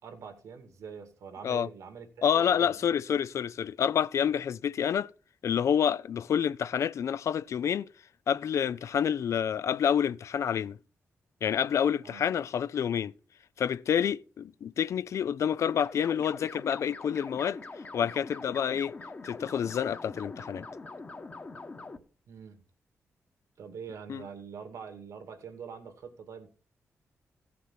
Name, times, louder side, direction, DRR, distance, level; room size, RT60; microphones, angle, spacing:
voice 1, 0.0-2.7 12.0-12.3 22.3-22.6 23.6-26.5, right 6 dB, 90° right, 2.3 m, -44 dB
voice 2, 2.2-5.1 5.4-7.9 8.3-10.8 11.4-13.1 13.6-17.6 17.9-19.0 19.2-20.7 24.1-24.2, left 8 dB, 70° left, 0.4 m, -28 dB
sound 1, 15.7-22.0, left 3 dB, 30° left, 1.2 m, -43 dB
16.0 x 6.0 x 5.7 m
wide cardioid pair, 125°, 5 cm